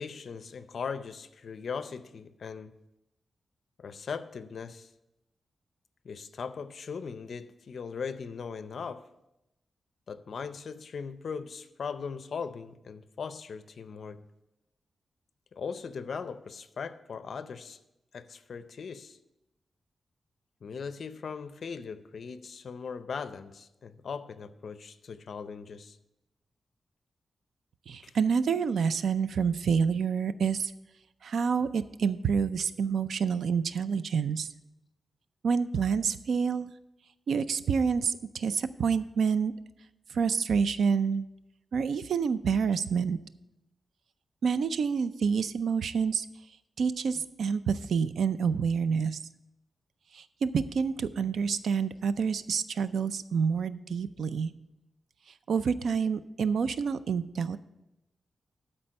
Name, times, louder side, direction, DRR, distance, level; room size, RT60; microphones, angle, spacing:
voice 1, 0.0-2.7 3.8-4.9 6.0-9.1 10.1-14.2 15.5-17.8 18.1-19.2 20.6-26.0 28.0-28.1, left 5 dB, 65° left, 0.5 m, -39 dB
voice 2, 27.9-30.7 31.2-34.5 35.4-36.7 37.3-39.5 40.1-41.3 41.7-43.2 44.4-46.3 46.8-49.2 50.1-54.5 55.5-57.6, right 6 dB, 85° right, 0.4 m, -28 dB
12.0 x 4.4 x 6.4 m
wide cardioid pair, 135°, 0 cm